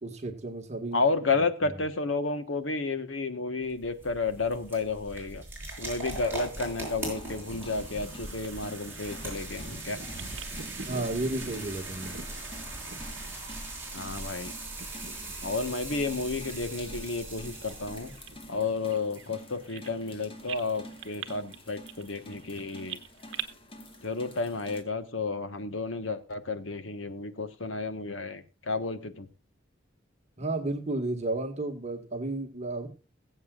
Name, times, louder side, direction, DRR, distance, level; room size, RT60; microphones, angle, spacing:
voice 1, 0.0-1.0 1.6-1.7 10.8-12.1 30.4-32.9, right 2 dB, 35° right, 4 dB, 1.9 m, -32 dB
voice 2, 0.9-5.4 5.8-10.0 13.9-14.5 15.4-18.1 18.5-23.0 24.0-29.3, left 3 dB, 85° left, 10 dB, 1.4 m, -31 dB
sound 1, 3.6-18.5, right 2 dB, 10° right, 6.7 m, -40 dB
sound 2, 7.0-24.8, left 1 dB, 30° left, 2.0 m, -49 dB
Bird vocalization bird call bird song, 8.4-14.4 14.7-15.6 15.9-16.1 16.7-20.1 20.5-23.4, right 7 dB, 70° right, 1.1 m, -45 dB
21.5 x 8.1 x 2.5 m, 0.33 s
head